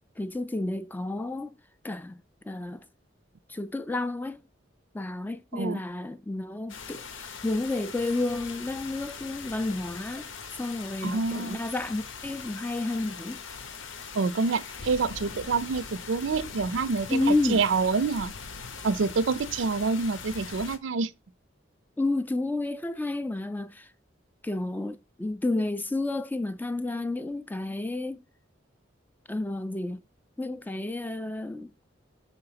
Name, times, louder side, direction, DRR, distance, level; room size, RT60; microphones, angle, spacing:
voice 1, 0.2-1.5 1.8-2.8 3.5-4.4 4.9-10.3 10.6-13.4 17.1-17.6 22.0-23.9 24.4-28.2 29.3-30.0 30.4-31.7, left 2 dB, 10° left, 0.3 m, -31 dB
sound 1, 6.7-20.8, left 5 dB, 85° left, 0.8 m, -41 dB
voice 2, 11.0-11.6 14.2-18.3 18.8-21.1, right 4 dB, 70° right, 0.5 m, -27 dB
6.1 x 3.9 x 5.7 m
head